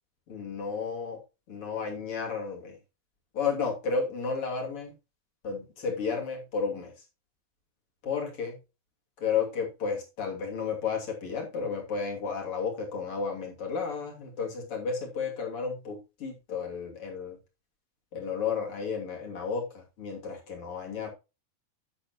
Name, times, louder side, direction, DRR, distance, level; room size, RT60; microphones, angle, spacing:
voice 1, 0.3-1.2 1.5-2.8 3.3-4.9 5.4-7.0 8.0-8.6 9.2-17.4 18.1-21.1, left 5 dB, 35° left, 0 dB, 3.2 m, -32 dB
11.5 x 7.4 x 3.0 m, 0.28 s
omnidirectional pair, 4.8 m